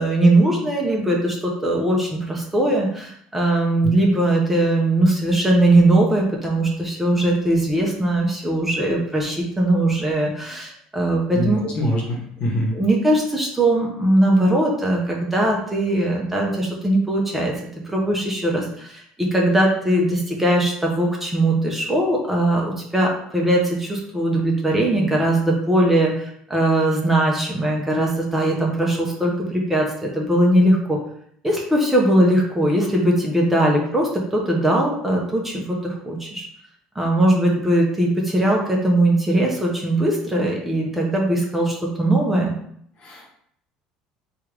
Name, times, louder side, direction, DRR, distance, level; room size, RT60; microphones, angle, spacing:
voice 1, 0.0-11.6 12.7-17.5 17.8-31.0 31.4-36.5 37.0-42.5, right 1 dB, 10° right, -2 dB, 0.6 m, -20 dB
voice 2, 11.3-12.7 43.0-43.3, equal, 50° left, -1 dB, 1.1 m, -24 dB
3.2 x 2.4 x 3.2 m, 0.67 s
cardioid pair, 125°, 2 cm